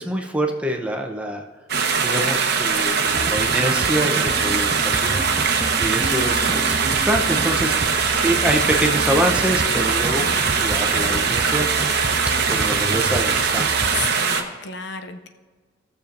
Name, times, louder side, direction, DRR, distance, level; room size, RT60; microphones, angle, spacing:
voice 1, 0.0-1.4 2.0-10.3 10.6-11.7 12.5-14.5, right 1 dB, 5° right, 2 dB, 0.7 m, -26 dB
sound 1, 1.7-14.4, right 5 dB, 55° right, 0.9 m, -21 dB
sound 2, 3.1-14.1, right 3 dB, 30° right, 0.3 m, -31 dB
sound 3, 3.7-11.3, right 1 dB, 15° left, 1.7 m, -36 dB
voice 2, 13.9-15.3, left 6 dB, 60° left, 7 dB, 0.6 m, -32 dB
17.0 x 6.8 x 2.6 m, 1.4 s
head